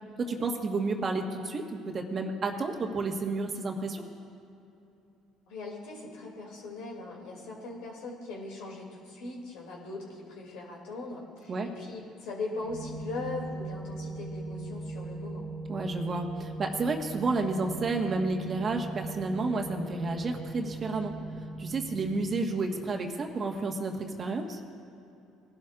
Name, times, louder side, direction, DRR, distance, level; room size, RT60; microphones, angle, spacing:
voice 1, 0.2-4.0 11.5-11.7 15.7-21.2 21.6-24.6, right 3 dB, 40° right, 2 dB, 1.5 m, -31 dB
voice 2, 5.5-15.5, left 3 dB, 75° left, -2 dB, 2.8 m, -40 dB
sound 1, 12.6-22.4, right 2 dB, 90° right, 1.9 m, -39 dB
19.5 x 11.5 x 2.6 m, 2.7 s
hypercardioid pair, 65°, 0 cm